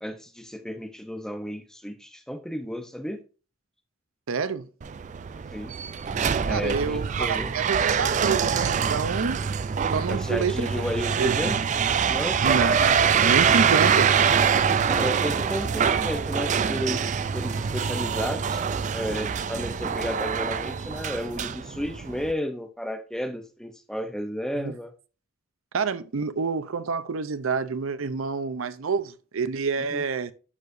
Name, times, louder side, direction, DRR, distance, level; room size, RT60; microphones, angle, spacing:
voice 1, 0.0-3.2 5.5-5.7 6.4-7.6 10.1-11.6 12.1-12.4 14.8-24.9 29.8-30.0, equal, 5° left, 0.7 m, -33 dB
voice 2, 4.3-4.7 6.5-9.4 9.8-10.7 11.2-11.4 12.4-14.1 24.6-24.7 25.7-30.3, right 5 dB, 80° right, 0.6 m, -28 dB
sound 1, 4.8-22.3, right 7 dB, 35° right, 0.3 m, -24 dB
Bowed string instrument, 17.2-21.6, right 3 dB, 55° right, 2.4 m, -49 dB
11.0 x 4.8 x 2.6 m
head